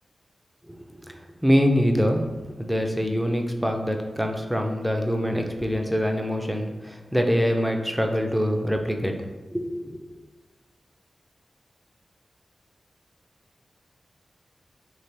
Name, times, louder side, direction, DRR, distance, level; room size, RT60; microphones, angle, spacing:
voice 1, 0.7-1.1 1.4-2.3 2.6-9.2 9.5-10.0, equal, ahead, 3 dB, 0.5 m, -24 dB
3.2 x 2.9 x 4.4 m, 1.2 s
wide cardioid pair, 70°, 0 cm